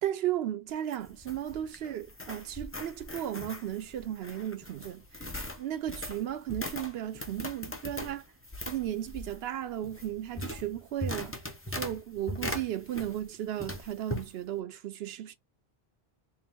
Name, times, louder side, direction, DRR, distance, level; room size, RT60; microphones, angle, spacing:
voice 1, 0.0-5.3 5.6-8.2 8.7-11.4 11.7-15.4, right 11 dB, 75° right, 0.8 m, -35 dB
sound 1, 0.7-13.3 13.6-14.3, left 1 dB, 15° left, 0.5 m, -40 dB
4.5 x 2.1 x 3.4 m
omnidirectional pair, 1.1 m